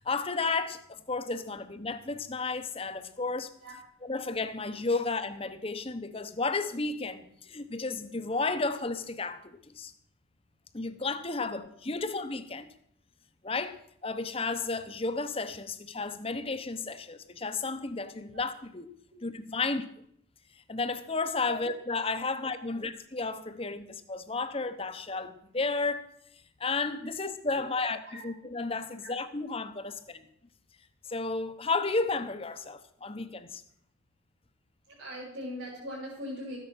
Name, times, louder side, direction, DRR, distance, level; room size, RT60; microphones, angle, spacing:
voice 1, 0.0-3.5 4.0-9.9 10.7-12.7 13.4-18.9 19.2-19.8 20.7-26.1 26.6-28.0 28.2-30.3 31.1-33.6, left 3 dB, 25° left, 0.8 m, -33 dB
voice 2, 34.9-36.6, equal, 70° right, 5.2 m, -40 dB
13.5 x 9.9 x 6.1 m
head